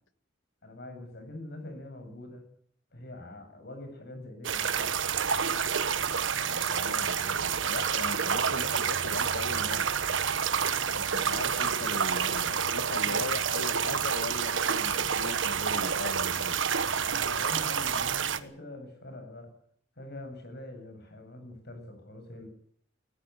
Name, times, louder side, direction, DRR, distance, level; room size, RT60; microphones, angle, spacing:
voice 1, 0.6-2.5 2.9-4.9 17.0-19.6 20.0-22.5, left 1 dB, 60° left, 7.4 m, -44 dB
sound 1, 4.4-18.4, right 7 dB, 80° right, 1.3 m, -28 dB
voice 2, 6.3-10.1 11.0-16.6, left 3 dB, 85° left, 1.7 m, -39 dB
Chink clink, 14.9-15.7 16.9-17.8, left 2 dB, 15° left, 3.3 m, -52 dB
21.0 x 15.0 x 9.5 m
head